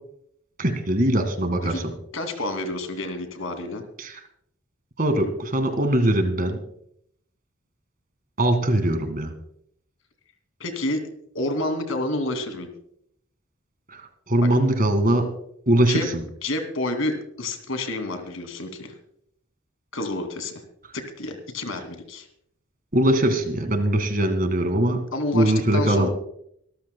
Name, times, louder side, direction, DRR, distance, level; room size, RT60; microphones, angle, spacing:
voice 1, 0.6-1.9 4.0-4.1 5.0-6.6 8.4-9.3 14.3-15.3 15.7-16.2 22.9-25.0 25.3-26.1, right 1 dB, 45° right, 8 dB, 2.0 m, -21 dB
voice 2, 2.1-3.8 10.6-11.0 11.3-12.7 14.4-14.5 15.9-16.1 16.4-18.9 19.9-20.6 20.9-22.3 25.1-26.1, left 2 dB, 85° left, 6 dB, 2.7 m, -29 dB
24.5 x 13.5 x 2.3 m, 0.70 s
head